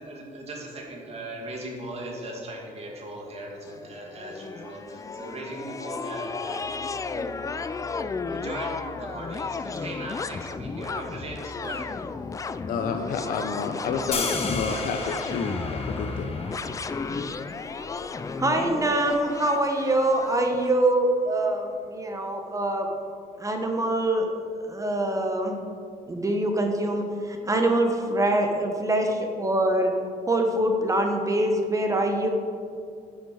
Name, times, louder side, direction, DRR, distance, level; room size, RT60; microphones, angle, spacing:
voice 1, 0.0-7.3 8.3-11.9, right 1 dB, 40° right, -1 dB, 2.4 m, -38 dB
sound 1, 3.7-20.8, left 4 dB, 20° left, 0.4 m, -34 dB
voice 2, 12.7-15.0 15.3-16.3, left 5 dB, 60° left, 5 dB, 0.7 m, -30 dB
sound 2, 14.1-20.2, left 3 dB, 40° left, 1.2 m, -36 dB
voice 3, 18.4-22.9 23.4-24.3 24.6-25.6 26.1-29.9 30.3-32.3, right 1 dB, 20° right, 3 dB, 1.1 m, -24 dB
11.5 x 6.5 x 4.8 m, 2.4 s
cardioid pair, 105°, 16 cm